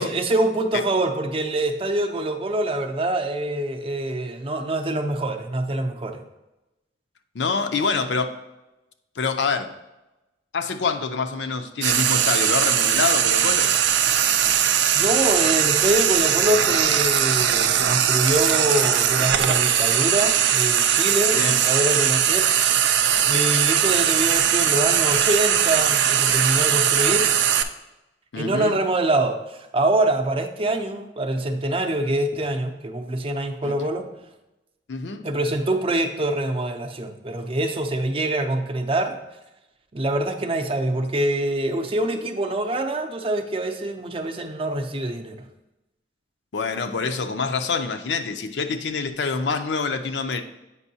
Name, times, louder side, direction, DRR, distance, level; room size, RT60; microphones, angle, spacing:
voice 1, 0.0-6.2 14.9-22.5 22.7-22.9 23.2-27.3 28.3-34.1 35.2-39.2 39.9-45.4, right 1 dB, 30° right, 6 dB, 0.5 m, -25 dB
voice 2, 7.3-8.3 9.2-9.7 10.5-13.7 21.3-21.6 28.3-28.8 33.6-33.9 34.9-35.2 46.5-50.4, left 4 dB, 80° left, 7 dB, 0.5 m, -26 dB
Frying (food), 11.8-27.6, right 9 dB, 85° right, 0.4 m, -20 dB
8.2 x 5.3 x 2.8 m, 0.99 s
head